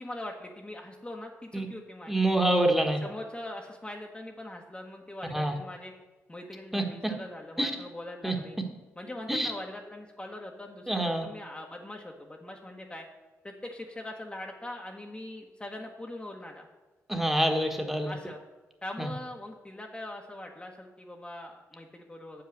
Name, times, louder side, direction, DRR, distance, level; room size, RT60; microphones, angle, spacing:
voice 1, 0.0-2.2 3.0-5.9 6.3-8.6 9.0-13.1 13.4-16.7 18.0-18.4 18.8-22.4, left 1 dB, 20° left, 0 dB, 1.2 m, -42 dB
voice 2, 2.1-3.0 5.3-5.5 6.7-7.1 7.6-7.7 8.2-8.3 9.3-9.5 10.9-11.3 17.1-18.1 19.0-19.1, right 1 dB, 5° right, 3 dB, 1.4 m, -26 dB
7.3 x 5.9 x 6.5 m, 1.2 s
supercardioid pair, 55°, 6 cm